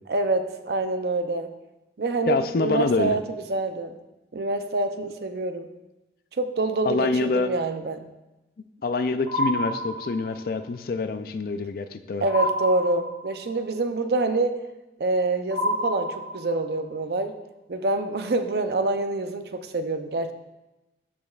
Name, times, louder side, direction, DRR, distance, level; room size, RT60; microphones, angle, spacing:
voice 1, 0.1-1.5 2.0-4.0 4.3-5.7 6.3-8.1 12.2-14.6 15.0-17.4 17.7-20.3, right 2 dB, 60° right, 8 dB, 0.5 m, -26 dB
voice 2, 2.3-3.2 6.9-7.5 8.8-12.2, left 3 dB, 50° left, 10 dB, 0.4 m, -26 dB
sound 1, 9.3-10.5 12.3-13.5 15.5-16.7, equal, 30° left, 1.4 m, -28 dB
12.5 x 5.1 x 2.4 m, 1.0 s
head